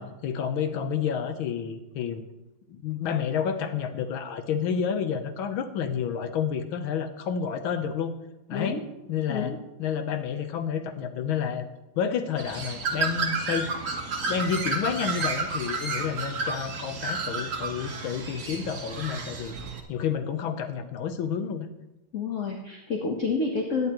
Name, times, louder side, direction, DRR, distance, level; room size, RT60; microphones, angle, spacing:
voice 1, 0.0-2.2 2.7-8.1 8.5-8.8 9.1-9.5 9.8-11.7 12.0-13.7 14.3-19.5 19.9-21.7, left 7 dB, 80° left, 9 dB, 1.7 m, -30 dB
voice 2, 8.5-8.8 9.3-9.6 22.1-23.9, left 4 dB, 45° left, 1 dB, 1.2 m, -29 dB
Bird, 12.4-19.8, right 3 dB, 45° right, 1.4 m, -31 dB
17.0 x 10.5 x 3.0 m, 0.98 s
omnidirectional pair, 2.2 m